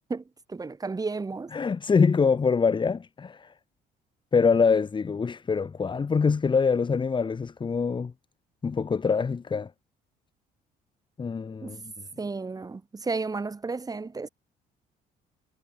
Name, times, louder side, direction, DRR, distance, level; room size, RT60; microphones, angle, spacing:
voice 1, 0.5-1.5 11.6-11.8 12.2-14.3, right 4 dB, 20° right, 6.5 m, -32 dB
voice 2, 1.5-3.5 4.3-8.1 8.6-9.7 11.2-11.8, left 5 dB, 30° left, 2.3 m, -24 dB
cardioid pair, 110°, 17 cm